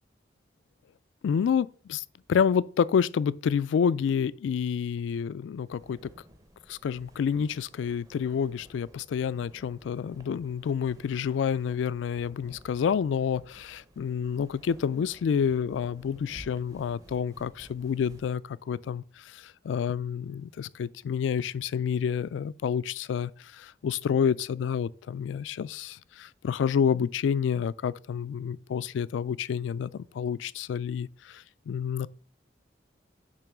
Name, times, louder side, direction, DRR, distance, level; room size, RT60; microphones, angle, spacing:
voice 1, 1.2-2.0 2.3-6.0 6.7-32.1, left 7 dB, 90° left, 0.3 m, -29 dB
sound 1, 5.6-18.3, equal, 20° right, 0.7 m, -54 dB
6.9 x 3.1 x 6.0 m
head